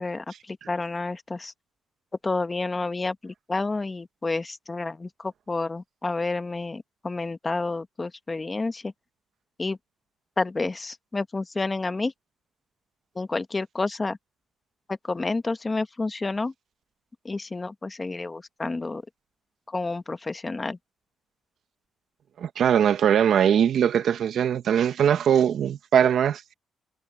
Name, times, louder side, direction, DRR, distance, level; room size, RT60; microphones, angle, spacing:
voice 1, 0.0-1.5 2.2-8.9 9.6-9.8 10.4-12.1 13.1-14.2 14.9-16.5 17.2-19.0 19.7-20.8, left 3 dB, 25° left, 1.4 m, -30 dB
voice 2, 22.4-26.5, right 9 dB, 65° right, 1.4 m, -21 dB
cardioid pair, 90°, 0 cm